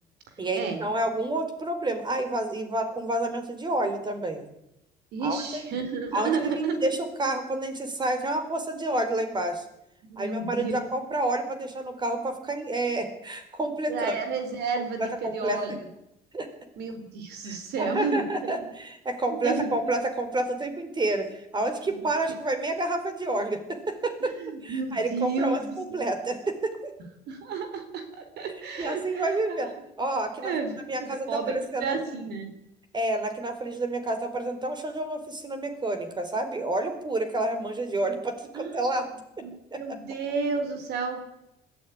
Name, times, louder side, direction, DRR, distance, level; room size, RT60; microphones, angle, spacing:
voice 1, 0.4-4.4 5.2-5.7 6.1-9.6 10.2-14.2 15.0-15.8 16.3-16.5 17.4-24.3 24.6-26.9 28.8-29.7 30.0-30.5 30.9-32.0 32.9-39.1 39.7-40.0, right 2 dB, 25° right, 8 dB, 4.4 m, -29 dB
voice 2, 5.1-6.9 10.0-10.8 13.9-15.7 16.8-18.2 19.3-19.7 24.2-26.0 27.3-29.6 30.4-30.7 31.0-31.5 31.8-32.5 38.5-38.7 39.4-39.5 39.8-41.2, right 4 dB, 75° right, 7 dB, 4.3 m, -31 dB
20.5 x 14.0 x 9.7 m, 0.86 s
cardioid pair, 110°, 17 cm